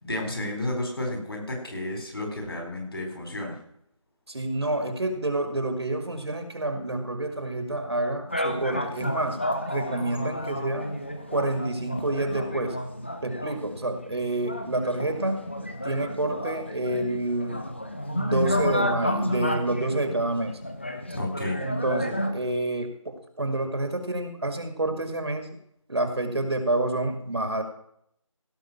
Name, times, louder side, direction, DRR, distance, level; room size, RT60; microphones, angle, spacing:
voice 1, 0.0-3.6 21.1-21.6, left 1 dB, 45° left, 2 dB, 4.4 m, -31 dB
voice 2, 4.3-9.4 9.7-10.9 11.3-12.8 13.2-15.4 15.8-17.6 18.1-20.5 21.6-25.5 25.9-27.6, right 2 dB, 50° right, 7 dB, 2.0 m, -28 dB
sound 1, 8.3-22.3, left 1 dB, 20° left, 0.7 m, -31 dB
17.0 x 6.0 x 5.8 m, 0.70 s
figure-of-eight pair, 175°, 17 cm